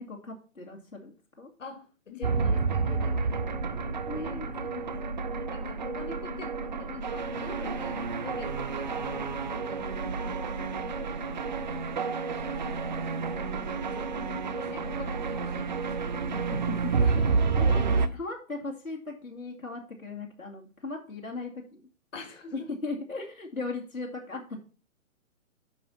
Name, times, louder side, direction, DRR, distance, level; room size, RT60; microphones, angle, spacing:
voice 1, 0.0-1.5 4.1-4.9 8.8-9.1 14.7-14.8 16.5-17.2 17.6-17.9 18.1-21.9 22.5-24.6, left 3 dB, 85° left, -1 dB, 2.3 m, -38 dB
voice 2, 1.6-3.8 4.2-4.5 5.1-9.9 10.2-11.0 12.4-13.6 13.8-16.5 17.0-17.3 17.6-18.1 22.1-22.5, left 3 dB, 65° left, 5 dB, 2.2 m, -46 dB
sound 1, 2.1-18.1, left 13 dB, 25° left, 1.6 m, -43 dB
sound 2, 2.2-18.1, right 5 dB, 35° right, 0.5 m, -30 dB
10.5 x 5.2 x 4.2 m, 0.35 s
figure-of-eight pair, 130°, 41 cm